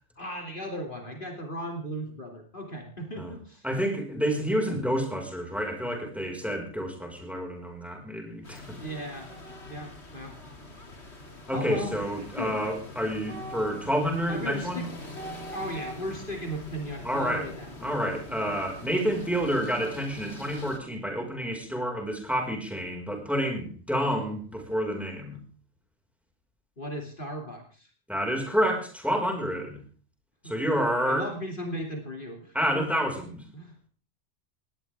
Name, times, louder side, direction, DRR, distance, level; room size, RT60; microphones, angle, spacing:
voice 1, 0.2-3.7 8.7-9.3 9.7-10.4 10.9-11.2 11.5-12.7 13.1-13.2 14.3-14.9 15.3-17.7 26.8-27.9 30.4-30.5 31.0-32.8 33.5-33.7, equal, 45° left, 2 dB, 3.1 m, -37 dB
voice 2, 3.6-8.6 11.5-14.9 17.0-17.5 17.8-25.4 28.1-29.8 30.4-31.3 32.5-33.4, equal, ahead, 2 dB, 5.4 m, -29 dB
sound 1, 8.4-20.8, left 1 dB, 65° left, 3.1 m, -43 dB
20.0 x 18.5 x 3.6 m, 0.39 s
omnidirectional pair, 1.2 m